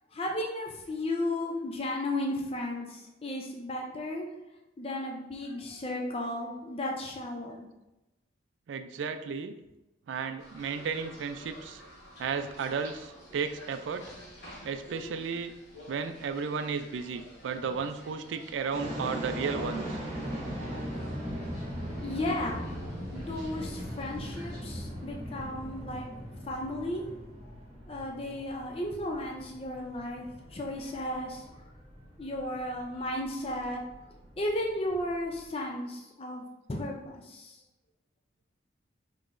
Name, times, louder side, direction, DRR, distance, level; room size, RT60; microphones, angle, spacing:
voice 1, 0.1-4.3 4.8-7.7 20.6-21.1 22.0-22.6 23.1-26.1 26.5-27.1 27.4-27.5 27.9-31.5 32.2-33.8 34.4-36.4 36.7-37.6, left 1 dB, 30° left, 0 dB, 0.4 m, -34 dB
voice 2, 8.7-9.5 10.1-11.8 12.2-14.1 14.6-15.5 15.9-20.0, right 5 dB, 75° right, 9 dB, 0.3 m, -34 dB
sound 1, 10.4-24.6, equal, 55° left, 1.2 m, -51 dB
sound 2, 18.7-35.4, equal, 35° right, 1.2 m, -39 dB
5.5 x 3.0 x 2.5 m, 0.96 s
head